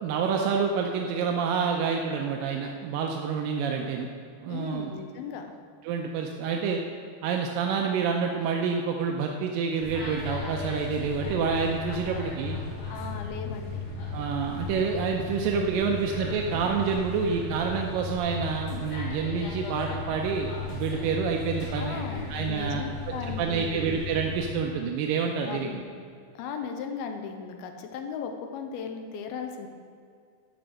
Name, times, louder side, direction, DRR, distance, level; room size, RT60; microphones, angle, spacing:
voice 1, 0.0-4.1 4.4-4.9 5.8-6.8 7.2-12.6 14.1-22.0 22.3-22.9 23.4-25.7, right 6 dB, 80° right, 2 dB, 2.1 m, -28 dB
voice 2, 4.5-5.5 12.0-12.2 12.9-13.8 21.8-23.9 25.4-25.9 26.4-29.7, left 6 dB, 85° left, 5 dB, 2.6 m, -37 dB
sound 1, 9.8-24.5, left 3 dB, 55° left, 3.9 m, -35 dB
12.0 x 5.2 x 6.5 m, 2.3 s
omnidirectional pair, 4.4 m